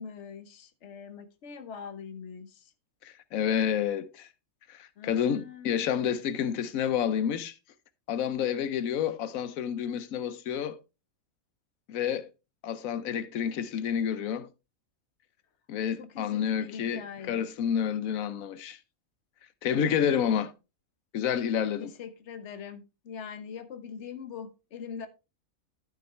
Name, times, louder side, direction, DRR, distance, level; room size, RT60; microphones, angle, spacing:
voice 1, 0.0-2.7 5.0-6.1 6.4-6.7 15.9-17.5 19.8-20.3 21.8-25.1, left 6 dB, 60° left, 1.3 m, -43 dB
voice 2, 3.0-4.3 4.7-7.5 8.1-10.8 11.9-12.3 12.6-14.5 15.7-18.8 19.6-20.5 21.1-21.9, left 8 dB, 80° left, 1.1 m, -29 dB
12.0 x 6.3 x 3.1 m
omnidirectional pair, 1.4 m